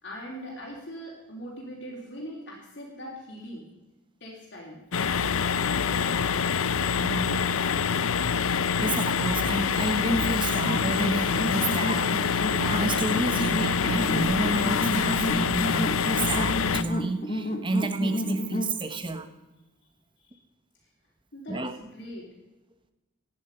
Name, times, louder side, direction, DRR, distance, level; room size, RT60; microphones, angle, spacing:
voice 1, 0.0-3.7 4.2-4.8 5.7-6.1 20.2-20.4 21.3-22.3, equal, 55° left, -4 dB, 3.5 m, -41 dB
sound 1, 4.9-16.8, left 6 dB, 85° left, 0.7 m, -26 dB
voice 2, 6.9-7.4 8.8-19.3 21.5-21.8, right 2 dB, 25° right, 9 dB, 1.2 m, -30 dB
sound 2, 10.1-18.8, equal, 35° left, 1.6 m, -31 dB
17.5 x 11.0 x 5.5 m, 1.0 s
head